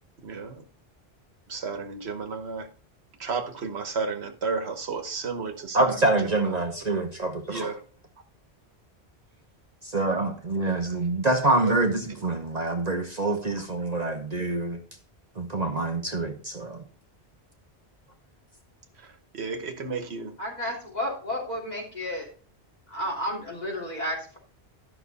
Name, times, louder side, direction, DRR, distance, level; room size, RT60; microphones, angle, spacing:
voice 1, 0.2-0.6 1.5-2.7 3.2-7.0 7.5-7.8 11.6-11.8 12.1-12.2 13.6-13.7 19.0-20.3, right 4 dB, 75° right, 7 dB, 1.4 m, -33 dB
voice 2, 5.7-7.7 9.8-14.8 15.4-16.8, right 2 dB, 40° right, 3 dB, 1.1 m, -26 dB
voice 3, 20.4-22.3 22.9-24.4, equal, 40° left, -3 dB, 3.1 m, -32 dB
12.0 x 6.1 x 4.1 m, 0.40 s
omnidirectional pair, 1.1 m